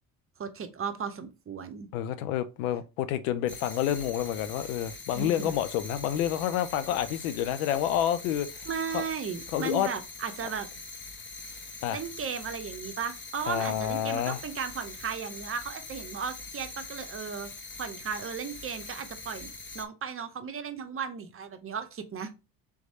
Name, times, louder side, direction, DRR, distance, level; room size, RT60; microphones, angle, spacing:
voice 1, 0.4-1.9 5.1-5.5 8.7-10.7 11.9-17.5 17.8-22.3, right 6 dB, 30° right, 0.8 m, -35 dB
voice 2, 1.9-8.5 8.9-9.0 9.5-9.9 11.8-12.0 13.5-14.4, left 10 dB, 80° left, 0.6 m, -29 dB
sound 1, 3.5-19.8, left 3 dB, 30° left, 1.0 m, -43 dB
3.6 x 3.2 x 4.1 m
hypercardioid pair, 65°, 41 cm